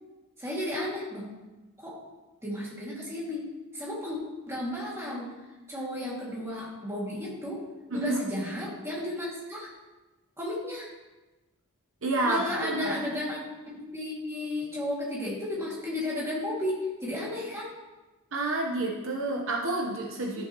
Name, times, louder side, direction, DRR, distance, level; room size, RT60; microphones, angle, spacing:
voice 1, 0.4-1.3 1.8-2.0 2.4-3.4 3.7-4.2 4.5-5.3 5.7-7.6 7.9-9.7 10.4-10.9 12.2-13.4 13.7-17.7 20.4-20.5, left 1 dB, 10° right, -6 dB, 2.3 m, -33 dB
voice 2, 12.0-13.0 18.3-20.4, right 2 dB, 60° right, -1 dB, 1.0 m, -29 dB
12.5 x 7.1 x 3.0 m, 1.1 s
head